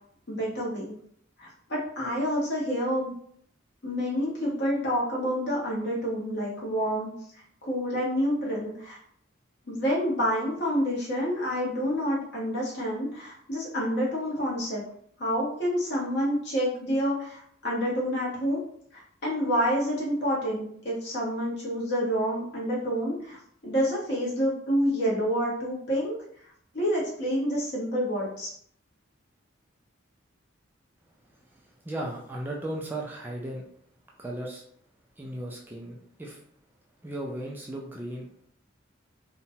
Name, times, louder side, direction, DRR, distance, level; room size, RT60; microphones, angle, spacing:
voice 1, 0.3-0.9 1.4-3.1 3.8-7.1 7.6-9.0 9.7-14.8 15.2-18.6 18.9-23.4 23.6-26.2 26.7-28.5, equal, 55° left, -4 dB, 1.0 m, -28 dB
voice 2, 31.4-33.6 34.2-34.6 35.2-36.4 37.0-38.3, right 1 dB, 10° right, -2 dB, 0.3 m, -36 dB
2.9 x 2.2 x 2.7 m, 0.64 s
head